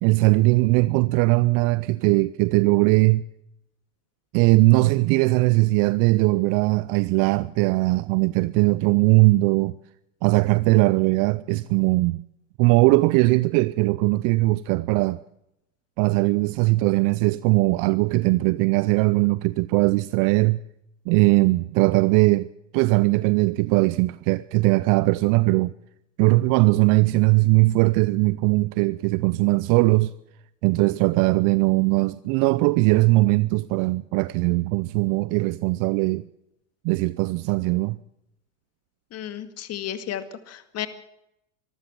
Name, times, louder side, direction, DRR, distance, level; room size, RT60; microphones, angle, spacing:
voice 1, 0.0-3.2 4.3-9.8 10.2-12.2 12.6-15.2 16.0-20.6 21.1-22.5 22.7-25.7 26.2-30.1 30.6-36.3 36.8-38.0, right 22 dB, 55° right, 0.7 m, -20 dB
voice 2, 39.1-40.9, left 11 dB, 40° left, 2.2 m, -33 dB
24.0 x 14.5 x 7.6 m
hypercardioid pair, 90°, 38 cm